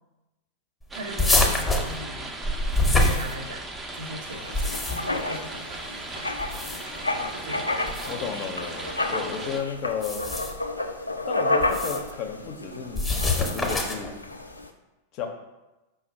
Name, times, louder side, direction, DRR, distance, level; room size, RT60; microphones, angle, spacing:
sound 1, 0.9-9.6, right 2 dB, 15° right, 0.5 m, -38 dB
voice 1, 0.9-2.3 2.9-3.7 3.9-6.3 7.3-8.1, right 1 dB, 65° right, 4 dB, 0.5 m, -39 dB
sound 2, 1.2-3.8 4.4-5.2 6.4-7.0 7.9-8.1 9.9-10.7 11.6-12.1 12.9-14.1, left 2 dB, 5° left, 0.8 m, -25 dB
Writing, 4.3-14.7, left 2 dB, 85° left, 0.3 m, -31 dB
voice 2, 8.1-10.2 11.3-14.1 15.1-15.3, left 7 dB, 40° left, 4 dB, 0.6 m, -33 dB
5.2 x 2.3 x 4.4 m, 1.0 s
figure-of-eight pair, 90°, 0 cm